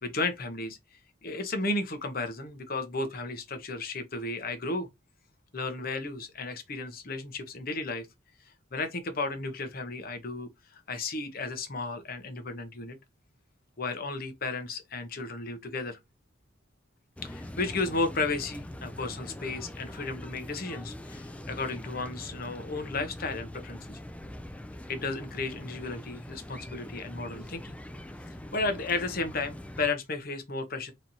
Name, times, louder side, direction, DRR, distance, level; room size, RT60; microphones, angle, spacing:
voice 1, 0.0-4.9 5.5-8.1 8.7-13.0 13.8-16.0 17.2-24.0 24.9-27.8 28.5-30.9, left 3 dB, 50° left, 0.9 m, -34 dB
sound 1, 17.2-29.9, left 1 dB, 5° left, 0.3 m, -43 dB
4.0 x 3.2 x 2.8 m
head